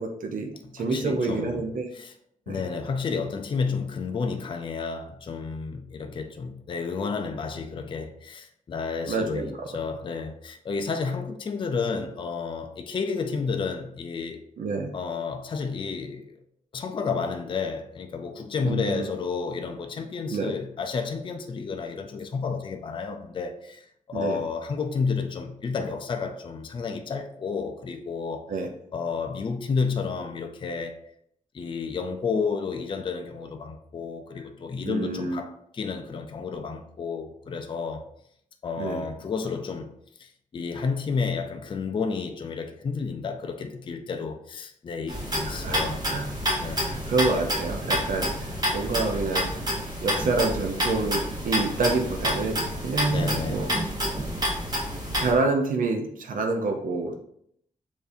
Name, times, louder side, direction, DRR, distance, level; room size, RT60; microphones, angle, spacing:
voice 1, 0.0-1.9 2.5-2.6 9.1-9.7 14.6-14.9 18.6-19.1 20.3-20.5 24.1-24.4 28.5-28.7 34.9-35.4 38.8-39.0 45.5-45.8 46.1-46.3 46.6-49.5 50.0-53.7 55.2-57.2, right 3 dB, 75° right, 0.6 m, -28 dB
voice 2, 0.8-2.1 2.5-14.4 14.9-16.3 16.7-28.5 28.9-31.0 31.5-38.1 38.6-39.9 40.2-46.0 46.6-47.0 53.1-53.7, left 5 dB, 35° left, 0.4 m, -31 dB
sound 1, 45.1-55.3, equal, 30° right, 1.0 m, -28 dB
6.8 x 2.6 x 2.6 m
wide cardioid pair, 155°, 14 cm